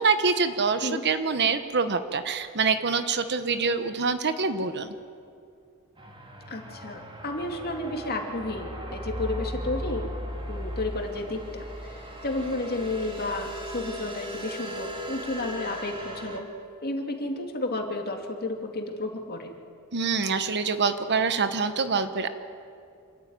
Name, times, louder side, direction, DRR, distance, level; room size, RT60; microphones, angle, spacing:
voice 1, 0.0-4.9 19.9-22.3, right 5 dB, 50° right, 10 dB, 1.1 m, -25 dB
sound 1, 6.0-16.4, equal, 25° right, 2.5 m, -37 dB
voice 2, 6.5-10.1 10.5-11.6 11.9-16.5 16.8-19.5, left 2 dB, 45° left, 3 dB, 2.6 m, -32 dB
26.5 x 14.5 x 9.6 m, 2.4 s
head